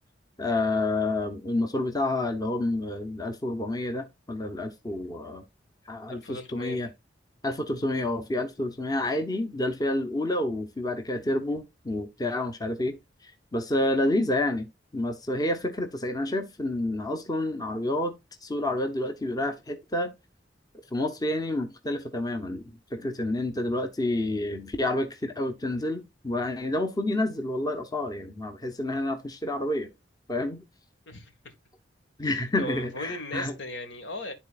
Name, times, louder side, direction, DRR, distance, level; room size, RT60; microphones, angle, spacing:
voice 1, 0.4-5.4 5.9-6.9 7.4-13.0 13.2-18.2 18.4-20.1 20.9-22.6 22.9-29.9 30.3-30.6 32.2-33.5, left 1 dB, 20° left, 0.9 m, -29 dB
voice 2, 6.1-6.8 31.1-31.5 32.2-34.3, left 1 dB, 80° left, 1.9 m, -38 dB
12.0 x 4.1 x 2.5 m
head